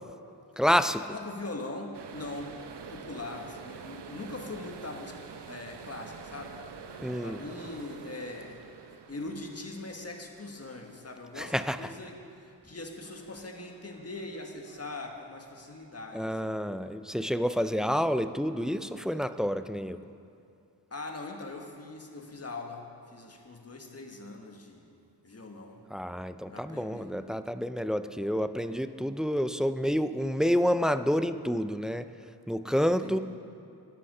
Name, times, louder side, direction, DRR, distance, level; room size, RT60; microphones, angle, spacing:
voice 1, 0.6-1.1 7.0-7.4 11.4-11.8 16.1-20.0 25.9-32.1 32.5-33.2, equal, ahead, 11 dB, 0.3 m, -28 dB
voice 2, 1.1-2.5 2.9-6.5 7.2-8.6 8.9-12.2 12.4-16.5 20.9-24.9 25.2-25.8 26.5-27.1 33.0-33.2, left 2 dB, 35° left, 3 dB, 1.5 m, -41 dB
sound 1, 1.9-16.7 17.0-17.5 17.9-19.2, right 6 dB, 75° right, 0.8 m, -48 dB
13.5 x 10.0 x 5.4 m, 2.5 s
wide cardioid pair, 75°, 41 cm